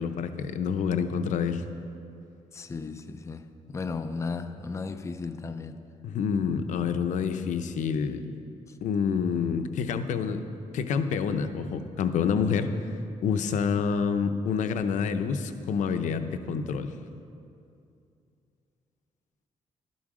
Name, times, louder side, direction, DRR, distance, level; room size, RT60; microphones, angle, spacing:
voice 1, 0.0-1.6 6.0-8.2 8.8-10.4 10.7-12.7 13.2-16.9, left 6 dB, 85° left, 9 dB, 0.7 m, -27 dB
voice 2, 2.5-3.5 3.7-5.8, left 4 dB, 25° left, 9 dB, 0.5 m, -35 dB
12.5 x 11.0 x 4.9 m, 2.6 s
cardioid pair, 120°, 12 cm